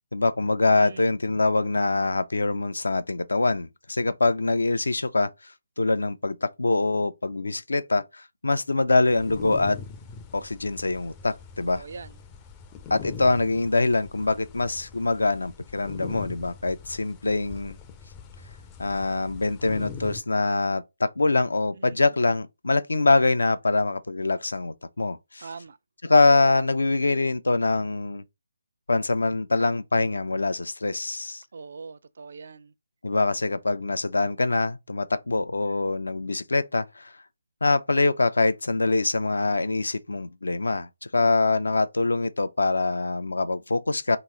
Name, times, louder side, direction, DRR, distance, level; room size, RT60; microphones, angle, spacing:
voice 1, 0.1-5.5 5.8-9.8 10.3-11.8 12.9-17.8 18.8-25.5 26.0-28.2 28.9-31.4 33.0-37.1 37.6-44.2, left 3 dB, 80° left, 0.4 m, -24 dB
voice 2, 0.8-1.1 11.7-12.2 21.7-22.1 25.4-25.8 31.5-32.7, right 4 dB, 55° right, 0.3 m, -42 dB
sound 1, 9.1-20.2, left 6 dB, 15° left, 0.4 m, -42 dB
3.0 x 2.8 x 3.7 m
figure-of-eight pair, 160°, 0 cm